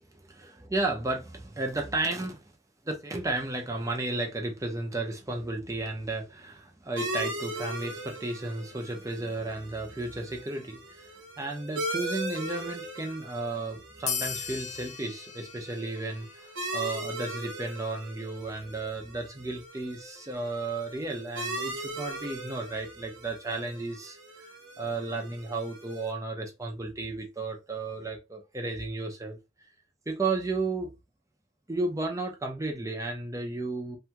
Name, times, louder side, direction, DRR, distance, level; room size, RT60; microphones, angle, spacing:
voice 1, 0.0-2.4 2.8-11.1 11.4-24.5 24.8-29.4 30.1-30.9 31.7-34.0, right 2 dB, 15° right, 0.6 m, -33 dB
sound 1, 7.0-26.1, right 1 dB, 75° right, 1.0 m, -39 dB
sound 2, 14.1-17.1, left 7 dB, 35° left, 0.3 m, -37 dB
2.7 x 2.3 x 2.8 m
head